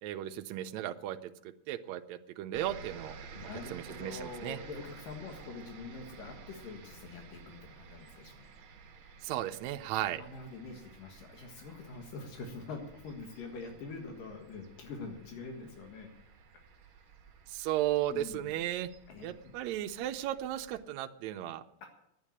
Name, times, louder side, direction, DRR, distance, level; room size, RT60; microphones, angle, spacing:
voice 1, 0.0-3.2 3.7-4.6 9.2-10.2 17.5-18.9 19.2-21.9, right 13 dB, 85° right, 8 dB, 1.6 m, -35 dB
sound 1, 2.5-20.8, right 5 dB, 65° right, 1.3 m, -53 dB
voice 2, 3.4-8.5 10.1-16.1 18.1-18.5 19.1-19.5 21.8-21.9, left 4 dB, 75° left, 2 dB, 3.3 m, -45 dB
10.5 x 9.1 x 8.5 m, 0.81 s
omnidirectional pair, 3.9 m